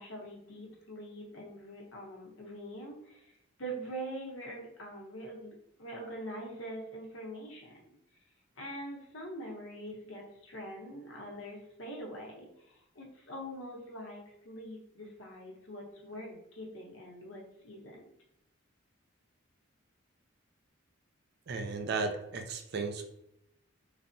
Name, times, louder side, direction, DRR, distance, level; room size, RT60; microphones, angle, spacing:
voice 1, 0.0-3.3 3.6-8.0 8.6-18.1, right 1 dB, 65° left, -1 dB, 0.8 m, -44 dB
voice 2, 21.5-23.0, right 4 dB, 50° right, 5 dB, 0.3 m, -34 dB
3.2 x 2.0 x 2.6 m, 0.81 s
head